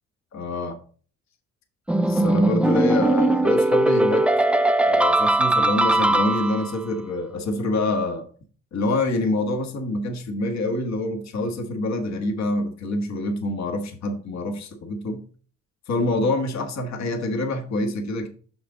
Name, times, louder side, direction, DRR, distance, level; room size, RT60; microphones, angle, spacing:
voice 1, 0.3-0.8 2.1-4.3 4.8-8.2 8.7-15.2 15.9-18.3, left 2 dB, 65° left, 5 dB, 1.5 m, -26 dB
sound 1, 1.9-6.8, right 1 dB, 5° right, 0.4 m, -20 dB
6.3 x 6.1 x 3.8 m, 0.42 s
cardioid pair, 90°, 30 cm